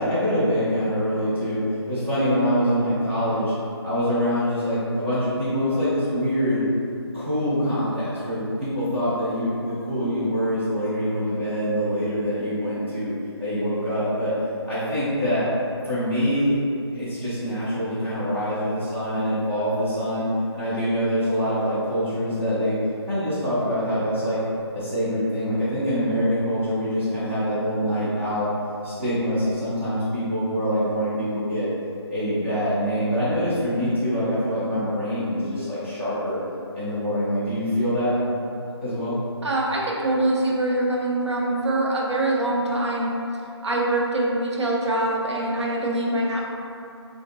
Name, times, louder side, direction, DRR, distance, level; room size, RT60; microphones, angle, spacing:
voice 1, 0.0-3.5 3.8-6.6 7.1-14.3 14.6-15.5 15.8-16.6 16.9-20.3 20.5-22.8 23.1-24.4 24.7-28.5 28.8-31.7 32.1-36.4 36.7-38.2 38.8-39.2, equal, 25° right, -14 dB, 0.5 m, -24 dB
voice 2, 39.4-43.1 43.6-46.4, right 1 dB, 75° right, -3 dB, 0.7 m, -24 dB
3.7 x 2.5 x 2.5 m, 2.6 s
figure-of-eight pair, 175°, 14 cm